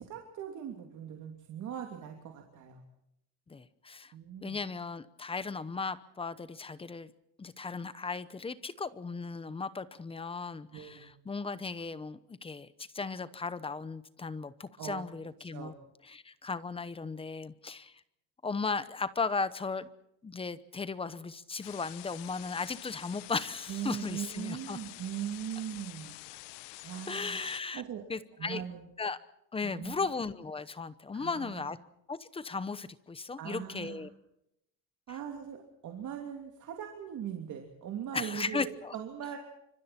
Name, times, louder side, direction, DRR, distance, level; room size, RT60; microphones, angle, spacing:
voice 1, 0.0-2.8 4.1-4.6 10.7-11.1 14.8-15.0 15.5-15.7 23.7-26.1 26.8-27.4 27.7-28.0 28.4-28.9 29.6-29.9 31.1-31.7 33.4-34.1 35.1-39.4, right 9 dB, 45° right, 2 dB, 2.9 m, -40 dB
voice 2, 3.5-4.1 4.4-7.1 7.4-12.7 12.9-15.7 16.1-17.9 18.4-19.9 20.2-24.8 27.1-27.8 28.1-28.6 29.0-29.2 29.5-31.8 32.1-34.1 38.1-38.9, left 4 dB, 15° left, 14 dB, 0.8 m, -36 dB
sound 1, 21.6-27.6, left 20 dB, 90° left, 0.9 m, -48 dB
28.5 x 25.5 x 4.4 m, 0.79 s
cardioid pair, 180°, 40 cm